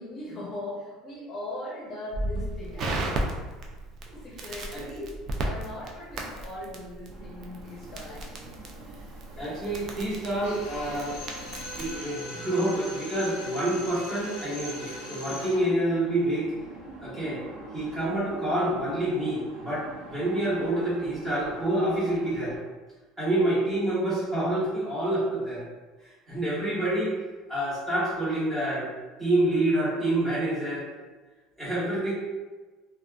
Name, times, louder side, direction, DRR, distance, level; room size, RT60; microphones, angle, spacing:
voice 1, 0.0-3.3 4.2-5.1 5.4-8.5 8.8-8.9 9.3-9.5, left 1 dB, 35° left, -6 dB, 0.7 m, -39 dB
Crackle, 2.1-12.0, right 2 dB, 45° right, 0.4 m, -35 dB
sound 1, 7.1-22.6, right 2 dB, 85° right, 0.7 m, -47 dB
voice 2, 9.4-11.2 11.8-16.5 17.0-17.4 17.7-22.5 23.2-25.6 26.3-27.1 27.5-28.9 29.2-30.8 31.6-32.1, right 1 dB, 15° right, -10 dB, 1.2 m, -27 dB
Drill, 10.4-15.7, left 1 dB, 80° left, 0.4 m, -40 dB
2.5 x 2.3 x 2.3 m, 1.3 s
cardioid pair, 135°, 0 cm